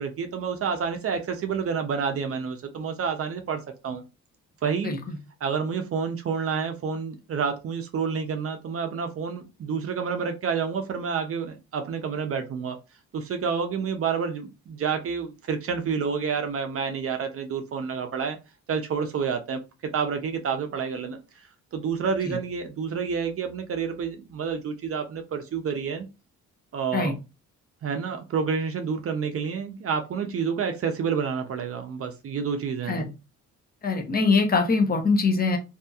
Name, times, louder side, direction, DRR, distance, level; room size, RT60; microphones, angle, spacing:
voice 1, 0.0-4.0 4.6-4.9 5.4-12.8 13.1-18.4 18.7-21.2 21.7-26.1 26.7-27.2 27.8-33.1, right 6 dB, 50° right, 0.6 m, -29 dB
voice 2, 4.8-5.2 22.2-22.4 26.9-27.1 32.9-33.1 33.8-35.6, left 4 dB, 30° left, 0.8 m, -23 dB
2.7 x 2.7 x 2.3 m
cardioid pair, 90°, 30 cm